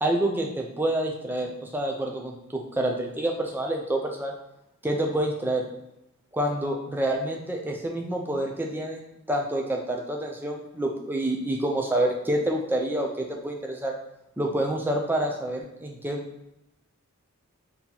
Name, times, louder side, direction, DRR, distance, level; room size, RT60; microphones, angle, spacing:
voice 1, 0.0-4.3 4.8-5.6 6.3-13.9 14.4-16.2, right 1 dB, 10° right, 1 dB, 0.5 m, -28 dB
4.3 x 2.8 x 3.9 m, 0.85 s
head